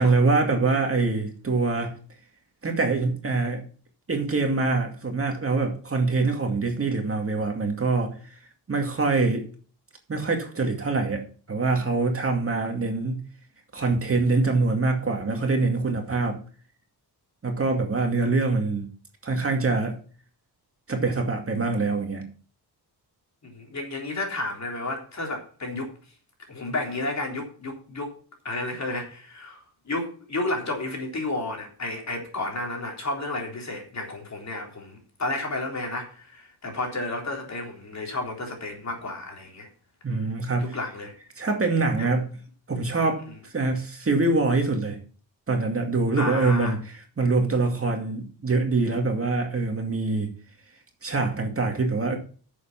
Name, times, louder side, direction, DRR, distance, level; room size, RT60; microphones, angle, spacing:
voice 1, 0.0-2.0 2.6-3.6 4.1-8.4 8.7-9.5 10.1-13.2 13.7-16.4 17.4-18.9 19.2-20.0 20.9-22.3 40.0-40.8 41.4-42.3 42.7-45.0 45.5-50.3 51.0-52.2, right 3 dB, 35° right, 2.2 m, -24 dB
voice 2, 23.4-25.9 26.5-28.1 28.4-39.7 40.6-41.1 42.0-42.1 46.2-46.8, left 2 dB, 40° left, 3.7 m, -32 dB
10.0 x 7.3 x 6.0 m
wide cardioid pair, 135°, 41 cm